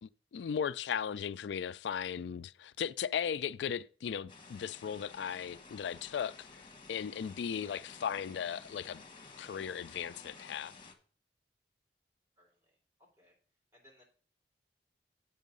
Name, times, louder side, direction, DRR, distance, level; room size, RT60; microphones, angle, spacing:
voice 1, 0.0-9.0 9.4-10.7, left 8 dB, 85° left, 0.3 m, -37 dB
sound 1, 4.3-10.9, left 4 dB, 30° left, 1.2 m, -53 dB
voice 2, 12.4-13.4 13.7-14.0, left 1 dB, 15° right, 3.8 m, -64 dB
8.2 x 5.5 x 5.3 m
head